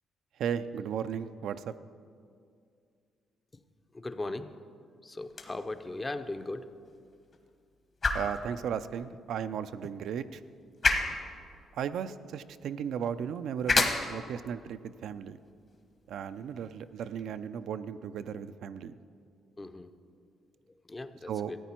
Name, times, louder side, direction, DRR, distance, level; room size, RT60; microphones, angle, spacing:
voice 1, 0.4-1.7 8.1-10.4 11.7-15.4 16.1-18.9 21.3-21.5, right 8 dB, 75° right, 11 dB, 0.4 m, -35 dB
voice 2, 3.9-4.6 5.0-6.6 11.1-11.2 19.6-19.9 20.9-21.6, left 2 dB, 20° left, 10 dB, 0.6 m, -38 dB
sound 1, 5.2-17.3, left 3 dB, 45° left, 1.2 m, -35 dB
13.5 x 9.0 x 4.4 m, 2.3 s
cardioid pair, 90°, 0 cm